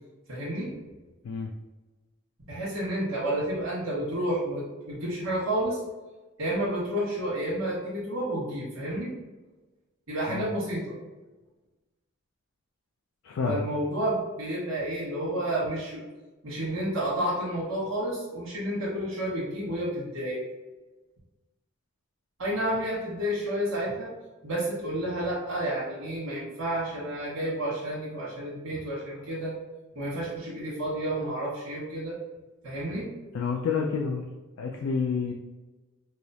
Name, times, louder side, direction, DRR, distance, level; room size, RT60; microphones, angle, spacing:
voice 1, 0.3-0.7 2.4-5.8 6.4-9.1 10.1-10.9 13.4-16.0 16.4-20.4 22.4-24.1 24.4-29.5 29.9-32.2 32.6-33.1, right 1 dB, 65° right, -8 dB, 1.3 m, -30 dB
voice 2, 13.2-13.6 33.3-34.3 34.6-35.3, left 5 dB, 65° left, 1 dB, 0.3 m, -29 dB
4.8 x 2.0 x 2.7 m, 1.2 s
head